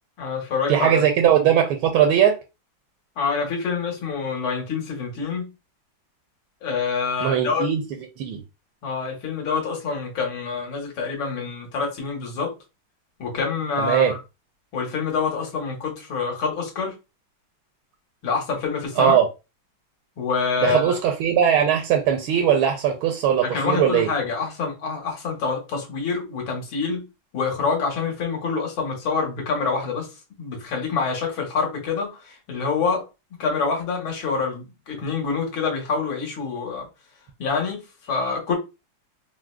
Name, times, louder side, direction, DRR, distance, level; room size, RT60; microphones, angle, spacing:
voice 1, 0.2-1.0 3.2-5.5 6.6-7.7 8.8-12.5 13.2-14.2 14.7-16.9 18.2-19.2 20.2-21.0 23.3-27.0 27.3-30.1 30.4-33.1 33.4-36.9 37.4-37.8 38.1-38.5, left 5 dB, 75° left, 1.8 m, -26 dB
voice 2, 0.7-2.4 7.2-7.8 8.2-8.4 13.8-14.1 19.0-19.2 20.6-24.1, right 9 dB, 80° right, 1.4 m, -19 dB
4.8 x 2.1 x 2.2 m
omnidirectional pair, 2.3 m